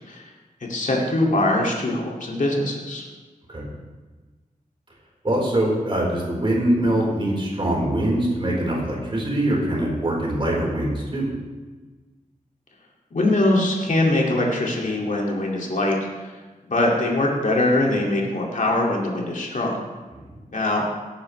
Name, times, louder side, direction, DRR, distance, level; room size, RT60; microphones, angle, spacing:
voice 1, 0.7-3.0 13.1-16.0 16.7-19.8 20.5-20.9, left 1 dB, 60° left, -2 dB, 2.3 m, -22 dB
voice 2, 5.2-11.3 20.3-20.4, right 1 dB, 35° right, -3 dB, 4.2 m, -23 dB
18.0 x 9.9 x 3.3 m, 1.3 s
wide cardioid pair, 95°, 15 cm